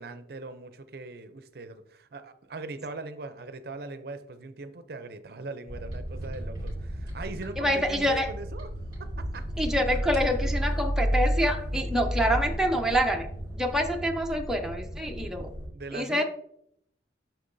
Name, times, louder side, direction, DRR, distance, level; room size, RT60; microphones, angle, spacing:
voice 1, 0.0-8.7 9.2-9.4 15.7-16.2, right 3 dB, 60° right, 11 dB, 0.5 m, -40 dB
sound 1, 5.7-15.7, equal, 25° right, 2.2 m, -32 dB
voice 2, 7.6-8.3 9.6-13.3 13.6-15.5 15.9-16.2, equal, 5° right, 2 dB, 0.5 m, -26 dB
6.6 x 5.9 x 2.6 m, 0.72 s
head